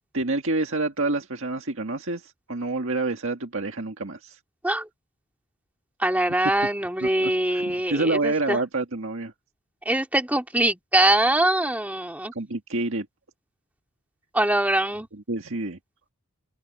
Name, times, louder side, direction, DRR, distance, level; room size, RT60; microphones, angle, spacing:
voice 1, 0.1-4.4 7.0-9.3 12.4-13.1 15.3-15.8, right 2 dB, 60° right, 1.9 m, -28 dB
voice 2, 6.0-8.6 9.9-12.3 14.3-15.1, right 1 dB, 5° right, 2.3 m, -23 dB
open air
head